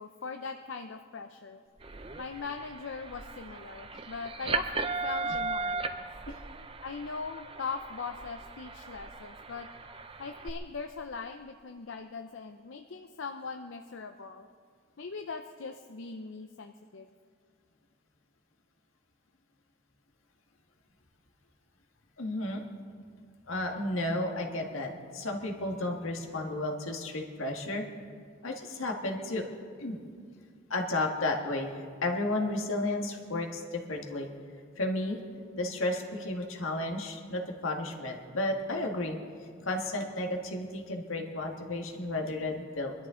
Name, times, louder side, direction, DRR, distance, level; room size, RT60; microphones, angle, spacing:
voice 1, 0.0-1.6 2.2-6.0 6.8-9.7 10.2-14.5 15.0-17.1, left 4 dB, 65° left, 6 dB, 0.6 m, -40 dB
sound 1, 1.8-10.5, right 4 dB, 25° right, 0.7 m, -37 dB
voice 2, 22.2-22.6 23.5-27.8 28.4-29.4 29.8-30.0 30.7-31.7 32.0-34.3 34.8-35.2 35.6-39.2 39.6-42.9, left 2 dB, 80° left, 2 dB, 1.7 m, -32 dB
23.5 x 12.5 x 3.8 m, 2.1 s
head